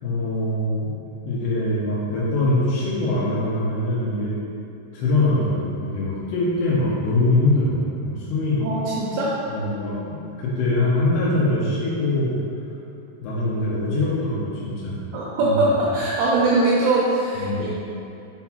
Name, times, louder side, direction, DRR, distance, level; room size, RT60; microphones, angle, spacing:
voice 1, 0.0-0.9 1.2-4.3 4.9-7.8 8.0-8.6 9.5-12.3 13.2-15.0 15.4-15.5 17.4-17.7, left 2 dB, 80° left, -8 dB, 2.4 m, -23 dB
voice 2, 8.6-9.3 15.1-17.7, right 2 dB, 85° right, -5 dB, 2.4 m, -21 dB
6.9 x 3.8 x 4.4 m, 2.7 s
omnidirectional pair, 5.9 m